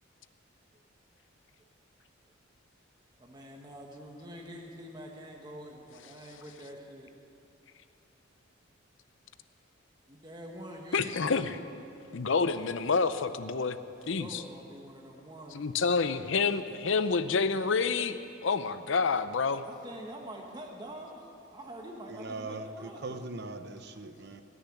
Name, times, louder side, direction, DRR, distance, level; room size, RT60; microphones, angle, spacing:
voice 1, 3.2-7.1 10.1-11.5 13.9-15.7 19.6-23.2, right 1 dB, 20° right, 0 dB, 1.3 m, -45 dB
voice 2, 10.9-11.5 12.1-13.8 14.1-14.4 15.5-19.7, left 4 dB, 70° left, 12 dB, 0.6 m, -28 dB
voice 3, 22.1-24.4, right 2 dB, 55° right, 9 dB, 0.9 m, -40 dB
19.0 x 6.9 x 10.0 m, 2.7 s
head